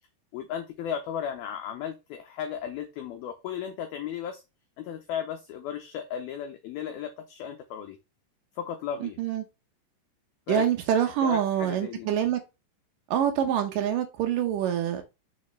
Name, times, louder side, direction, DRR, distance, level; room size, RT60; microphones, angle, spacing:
voice 1, 0.3-4.4 4.8-8.0 8.6-9.2 10.5-10.7 11.2-12.1, left 8 dB, 75° left, 2.2 m, -35 dB
voice 2, 9.0-9.4 10.5-12.4 13.1-15.0, right 9 dB, 85° right, 1.9 m, -26 dB
6.4 x 6.3 x 3.2 m
omnidirectional pair, 5.3 m